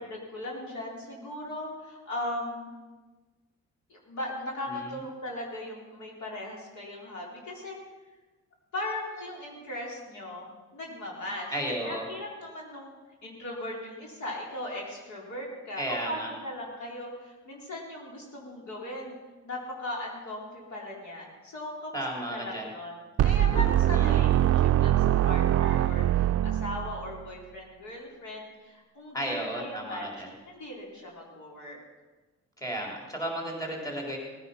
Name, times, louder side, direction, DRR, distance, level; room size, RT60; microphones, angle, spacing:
voice 1, 0.0-2.7 3.9-7.8 8.7-11.5 11.8-12.9 13.2-19.2 19.4-22.9 23.2-31.8, left 1 dB, 70° left, -2 dB, 4.0 m, -38 dB
voice 2, 4.7-5.0 11.5-12.0 15.8-16.3 21.9-22.7 23.9-24.3 29.1-30.3 32.6-34.2, right 1 dB, 10° left, -1 dB, 3.7 m, -34 dB
sound 1, 23.2-27.2, right 12 dB, 55° right, 0.4 m, -23 dB
18.0 x 9.7 x 5.7 m, 1.3 s
cardioid pair, 90°, 30 cm